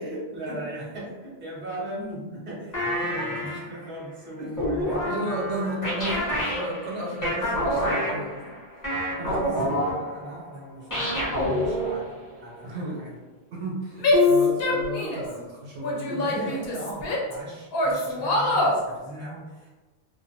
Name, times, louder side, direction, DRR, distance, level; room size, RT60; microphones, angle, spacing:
voice 1, 0.0-5.2 9.2-12.1 12.4-13.2 16.1-19.7, right 1 dB, 15° right, -7 dB, 0.5 m, -38 dB
sound 1, 2.7-3.8 4.6-10.5 10.9-12.2 14.1-15.1, left 2 dB, 20° left, 0.7 m, -27 dB
voice 2, 5.1-8.5 9.2-9.4 11.0-11.4 12.6-13.1 13.5-16.5, right 1 dB, 80° right, -3 dB, 1.0 m, -34 dB
Female speech woman speaking / Yell, 14.0-15.3 15.8-17.3 17.7-18.8, left 1 dB, 65° left, 0.8 m, -24 dB
2.5 x 2.1 x 2.6 m, 1.2 s
omnidirectional pair, 1.2 m